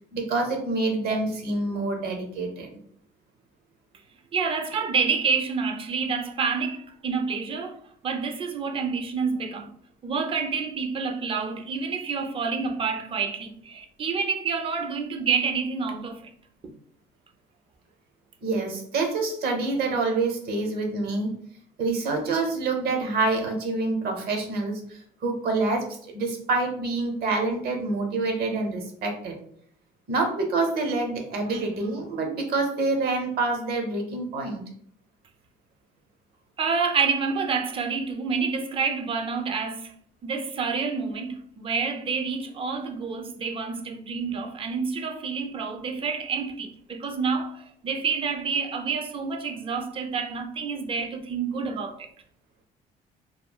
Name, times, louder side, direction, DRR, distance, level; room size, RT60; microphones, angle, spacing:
voice 1, 0.1-2.7 18.4-21.4 21.8-29.4 30.1-34.6, right 3 dB, 65° right, 0.8 m, -27 dB
voice 2, 4.3-9.7 10.0-16.2 36.6-39.9 40.2-52.1, right 5 dB, 30° right, 0.4 m, -28 dB
3.0 x 2.4 x 2.2 m
cardioid pair, 110°, 17 cm